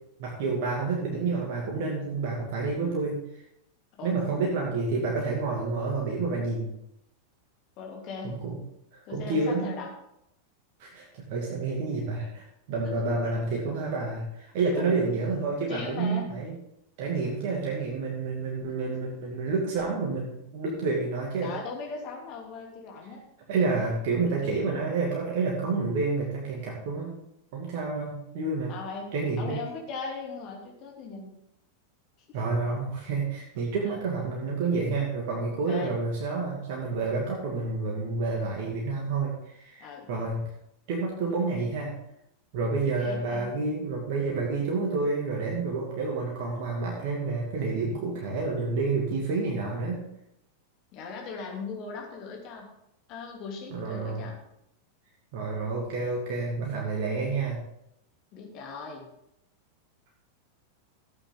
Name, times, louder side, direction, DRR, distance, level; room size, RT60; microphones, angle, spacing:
voice 1, 0.2-3.2 4.0-6.7 8.2-8.6 8.9-9.7 10.8-16.6 17.0-21.5 23.5-27.2 27.5-28.7 29.1-29.6 32.3-40.4 40.9-42.0 42.5-50.0 53.7-54.3 55.3-57.6, right 3 dB, 50° right, -2 dB, 2.4 m, -29 dB
voice 2, 7.8-8.4 9.1-9.9 14.7-15.0 15.7-16.3 18.7-18.8 21.4-23.2 24.4-24.6 28.7-29.1 29.4-31.4 32.3-32.4 33.8-34.0 35.7-35.9 39.8-40.1 43.0-43.5 50.9-52.7 53.1-54.4 58.3-59.1, left 4 dB, 40° left, 0 dB, 3.1 m, -39 dB
14.5 x 8.8 x 3.9 m, 0.80 s
figure-of-eight pair, 90°, 0 cm